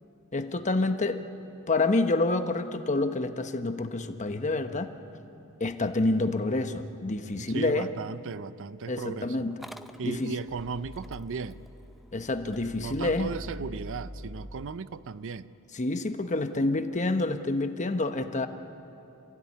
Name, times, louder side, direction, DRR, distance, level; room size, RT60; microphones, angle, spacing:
voice 1, 0.3-1.2 1.7-4.9 5.6-7.9 8.9-9.6 10.0-10.4 12.1-13.3 15.7-18.5, left 2 dB, 35° left, 8 dB, 1.0 m, -28 dB
voice 2, 7.4-9.5 10.0-11.6 12.8-15.5, right 5 dB, 60° right, 15 dB, 0.5 m, -36 dB
Motor vehicle (road) / Engine starting, 9.5-14.5, equal, ahead, 0.6 m, -44 dB
27.0 x 16.0 x 9.8 m, 2.8 s
head